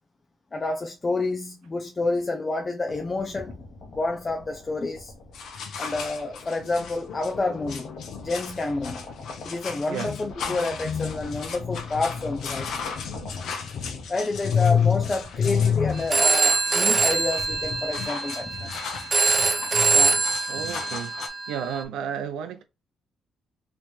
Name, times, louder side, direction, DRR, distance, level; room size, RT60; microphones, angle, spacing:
voice 1, 0.5-3.6 3.9-5.1 5.8-7.9 8.2-9.0 9.4-12.7 14.1-18.7 19.9-20.1, left 3 dB, 30° left, 0.6 m, -29 dB
sound 1, 2.9-20.0, left 2 dB, 55° left, 1.0 m, -45 dB
sound 2, 5.3-21.3, left 7 dB, 70° left, 0.7 m, -30 dB
Telephone, 15.9-21.8, right 4 dB, 35° right, 0.7 m, -24 dB
voice 2, 20.5-21.1 21.5-22.6, right 8 dB, 90° right, 0.4 m, -32 dB
3.0 x 3.0 x 3.1 m
cardioid pair, 90°, 0 cm